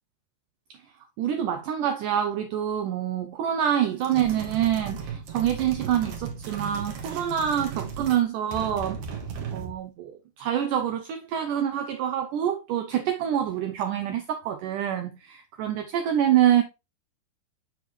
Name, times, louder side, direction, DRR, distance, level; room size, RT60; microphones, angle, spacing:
voice 1, 1.2-9.0 9.5-16.6, right 10 dB, 85° right, 1.8 m, -26 dB
sound 1, 4.0-8.2 8.5-9.8, right 6 dB, 60° right, 2.3 m, -36 dB
7.9 x 6.7 x 3.1 m
omnidirectional pair, 4.7 m